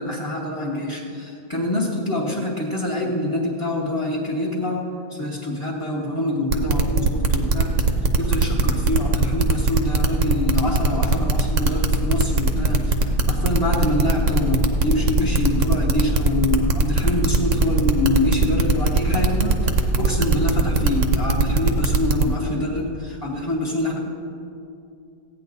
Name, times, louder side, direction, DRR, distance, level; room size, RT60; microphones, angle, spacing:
voice 1, 0.0-7.7 8.2-24.0, left 1 dB, 15° left, -4 dB, 0.8 m, -25 dB
sound 1, 6.5-22.2, right 3 dB, 55° right, 0.9 m, -19 dB
15.5 x 9.3 x 4.0 m, 2.6 s
omnidirectional pair, 2.0 m